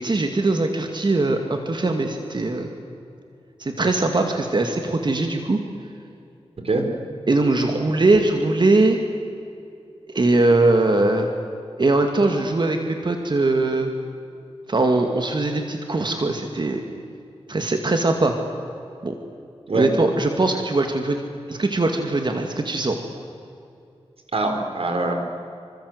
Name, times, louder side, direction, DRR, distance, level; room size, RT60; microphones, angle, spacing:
voice 1, 0.0-2.7 3.6-5.6 7.3-9.0 10.1-11.3 11.8-13.9 14.7-16.8 17.5-18.4 19.0-19.1 19.8-21.2 21.5-23.0, right 2 dB, 45° right, 4 dB, 2.3 m, -21 dB
voice 2, 24.3-25.1, right 2 dB, 65° right, 5 dB, 4.5 m, -23 dB
27.0 x 26.0 x 8.1 m, 2.6 s
wide cardioid pair, 90°, 11 cm